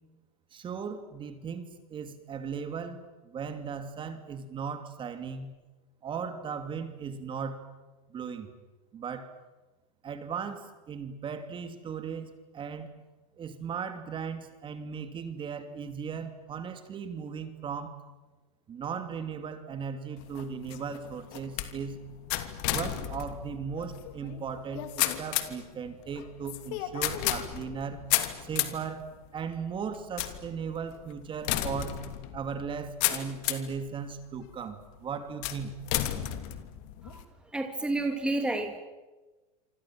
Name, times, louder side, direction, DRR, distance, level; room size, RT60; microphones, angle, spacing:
voice 1, 0.5-5.5 6.0-7.6 8.1-8.5 8.9-9.3 10.0-13.0 13.4-18.0 18.7-22.0 22.7-28.0 28.4-32.0 32.3-35.8, right 6 dB, 25° right, 9 dB, 2.7 m, -37 dB
sound 1, 20.2-33.8 34.3-34.8 35.4-37.2, left 14 dB, 55° left, 3.0 m, -33 dB
voice 2, 37.5-38.8, right 2 dB, 5° right, 5 dB, 2.5 m, -30 dB
27.0 x 26.0 x 7.6 m, 1.2 s
supercardioid pair, 130°, 20 cm